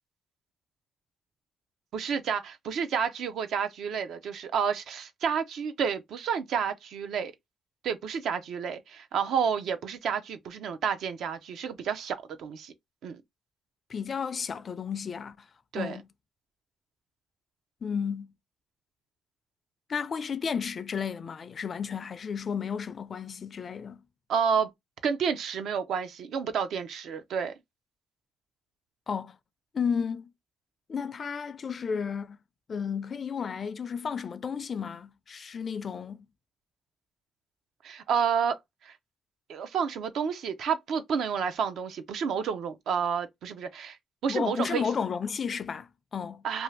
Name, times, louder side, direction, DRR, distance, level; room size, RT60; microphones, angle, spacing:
voice 1, 1.9-7.3 7.8-12.7 13.0-13.2 15.7-16.0 24.3-24.7 25.0-27.5 37.8-38.6 38.8-38.9 39.5-44.0 44.2-44.8 46.4-46.6, right 7 dB, 75° right, 0.5 m, -30 dB
voice 2, 13.9-15.5 15.8-16.1 17.8-18.3 19.9-24.0 29.1-29.4 29.7-30.3 30.9-32.4 32.7-36.2 44.3-46.4, left 6 dB, 45° left, 0.3 m, -33 dB
2.6 x 2.3 x 3.2 m
cardioid pair, 90°, 0 cm